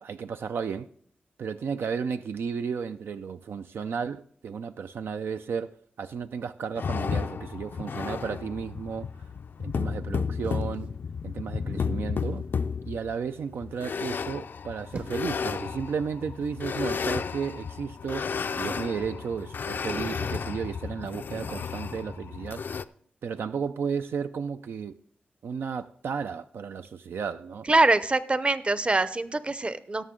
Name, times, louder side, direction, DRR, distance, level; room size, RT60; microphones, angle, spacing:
voice 1, 0.0-0.9 1.4-9.1 9.6-10.9 11.2-12.5 12.9-22.6 23.2-25.0 25.4-27.7, right 6 dB, 80° right, 0.4 m, -33 dB
sound 1, 6.8-22.8, left 6 dB, 65° left, 0.4 m, -33 dB
sound 2, 10.4-11.5 12.2-12.6 14.5-15.4 16.4-16.7, right 2 dB, 50° right, 1.0 m, -45 dB
voice 2, 27.7-30.0, right 2 dB, 30° right, 0.7 m, -24 dB
17.5 x 6.7 x 3.7 m
cardioid pair, 55°, 4 cm